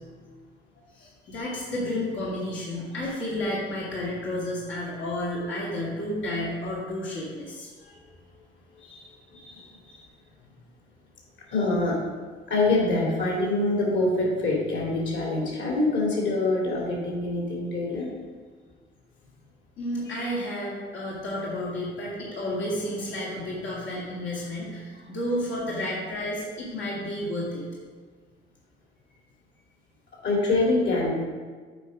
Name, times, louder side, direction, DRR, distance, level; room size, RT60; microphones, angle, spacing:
voice 1, 0.9-7.7 8.8-10.1 19.8-27.7, left 1 dB, 90° left, -7 dB, 2.1 m, -32 dB
voice 2, 11.5-12.0 12.5-18.1 30.2-31.1, left 2 dB, 65° left, -3 dB, 2.6 m, -25 dB
8.2 x 5.0 x 5.0 m, 1.5 s
cardioid pair, 90°, 20 cm